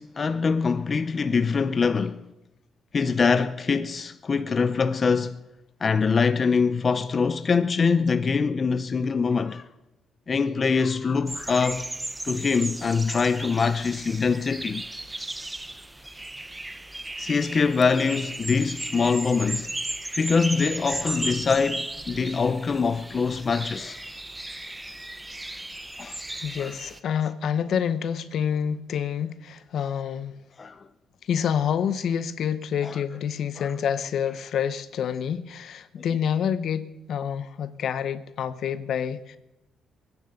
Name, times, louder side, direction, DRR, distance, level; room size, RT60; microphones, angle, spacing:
voice 1, 0.0-2.3 2.9-5.4 5.8-9.6 10.3-11.9 12.2-14.8 17.2-19.7 20.2-24.0 26.0-26.2 26.6-26.7 30.6-30.8 32.8-33.0 33.6-33.7 36.0-36.1, left 5 dB, 40° left, 0.6 m, -24 dB
sound 1, 11.3-27.0, right 1 dB, 10° right, 0.8 m, -36 dB
voice 2, 26.4-30.3 31.3-39.4, left 8 dB, 70° left, 0.9 m, -28 dB
21.5 x 10.0 x 6.6 m
cardioid pair, 90°, 0 cm